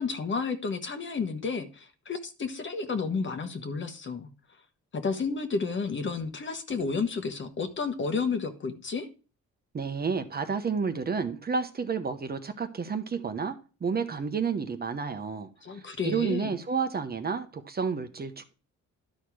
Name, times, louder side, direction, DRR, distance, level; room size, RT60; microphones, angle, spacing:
voice 1, 0.0-4.3 4.9-9.1 15.6-16.6, left 4 dB, 40° left, 1.3 m, -31 dB
voice 2, 9.7-15.5 15.7-18.6, right 5 dB, 30° right, 0.9 m, -31 dB
11.5 x 4.3 x 4.8 m
cardioid pair, 90°, 30 cm